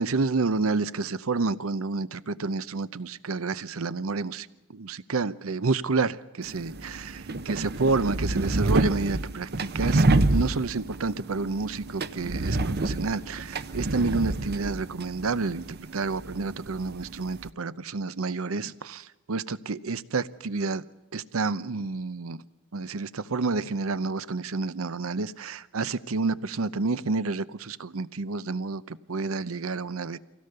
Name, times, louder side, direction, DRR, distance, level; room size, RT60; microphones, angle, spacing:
voice 1, 0.0-10.1 10.3-20.8 21.1-22.4 22.7-30.2, right 3 dB, 80° right, 0.8 m, -29 dB
sound 1, 6.4-17.5, right 2 dB, 50° right, 0.8 m, -28 dB
24.5 x 16.5 x 6.8 m
head